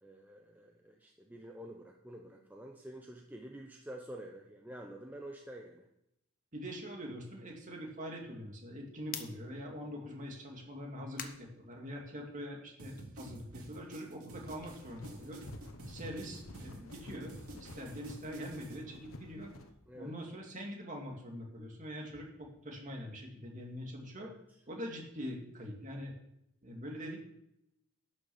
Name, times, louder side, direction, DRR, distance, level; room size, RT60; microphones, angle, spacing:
voice 1, 0.0-5.9 17.7-17.8 19.9-20.1 24.2-24.4, right 1 dB, 10° right, 1 dB, 0.7 m, -48 dB
voice 2, 6.5-15.5 15.9-19.5 19.9-24.3 24.7-26.1 26.6-27.2, equal, 35° right, 0 dB, 2.4 m, -44 dB
sound 1, 9.1-12.4 12.8-15.8 16.1-20.2, left 8 dB, 40° left, 1.0 m, -52 dB
sound 2, 12.8-18.8, right 1 dB, 90° right, 2.5 m, -50 dB
sound 3, 14.5-19.7, left 1 dB, 70° left, 1.3 m, -51 dB
12.0 x 6.3 x 7.1 m, 0.80 s
head